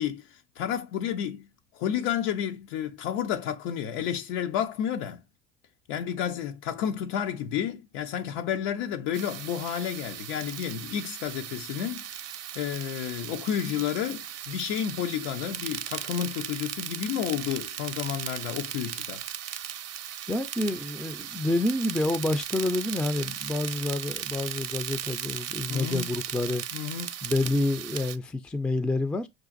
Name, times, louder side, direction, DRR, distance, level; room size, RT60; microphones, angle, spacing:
voice 1, 0.0-1.5 1.7-5.2 5.9-12.2 12.5-19.2 25.7-26.1 26.7-27.1, left 9 dB, 80° left, 0.7 m, -31 dB
sound 1, 9.1-28.2, right 10 dB, 45° right, 0.6 m, -37 dB
voice 2, 20.3-26.6 27.2-29.3, left 2 dB, 5° left, 0.4 m, -28 dB
6.1 x 2.5 x 2.4 m
supercardioid pair, 80°, 37 cm